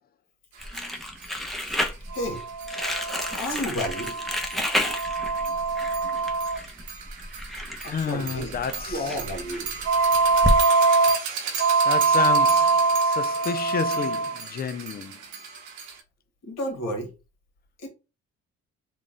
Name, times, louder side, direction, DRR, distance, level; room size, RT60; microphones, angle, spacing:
Crumpling crinkling, 0.6-10.6, left 1 dB, ahead, 0.8 m, -31 dB
sound 1, 0.7-0.8 1.2-1.3 1.7-1.8 2.1-16.0, right 4 dB, 75° right, 1.0 m, -24 dB
voice 1, 2.1-2.4 3.4-4.2 7.8-8.5 8.9-9.7 16.4-17.1 17.8-17.9, equal, 60° left, 1.6 m, -31 dB
voice 2, 7.8-9.1 11.9-15.1, left 6 dB, 30° left, 0.4 m, -30 dB
3.8 x 2.4 x 3.8 m
cardioid pair, 90°, 30 cm